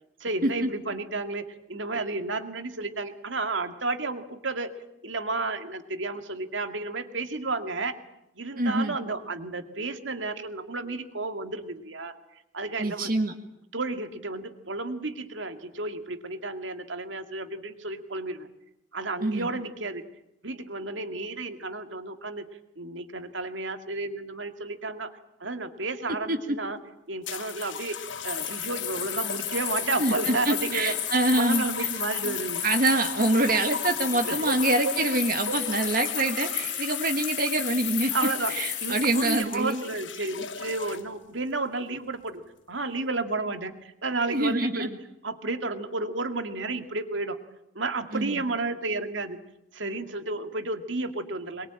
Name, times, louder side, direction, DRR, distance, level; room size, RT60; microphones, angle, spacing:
voice 1, 0.2-4.7 5.0-7.9 8.4-13.1 13.7-18.5 18.9-20.0 20.4-22.5 22.8-25.1 25.4-26.8 27.1-30.9 31.3-32.6 34.2-35.0 35.5-35.8 36.7-36.8 38.1-38.5 38.8-42.4 42.7-44.9 45.2-47.4 47.7-49.4 49.7-51.7, right 3 dB, 80° right, 7 dB, 2.2 m, -32 dB
voice 2, 8.6-8.9 12.8-13.3 19.2-19.5 26.3-26.4 30.0-31.6 32.2-32.4 32.6-38.1 38.5-39.8 44.3-44.9 48.1-48.4, right 2 dB, 50° right, 5 dB, 1.7 m, -25 dB
sound 1, 27.2-41.3 42.1-42.5, left 7 dB, 80° left, 1.4 m, -39 dB
sound 2, 28.2-39.4, left 10 dB, 60° left, 3.3 m, -32 dB
23.0 x 21.5 x 9.0 m, 0.84 s
head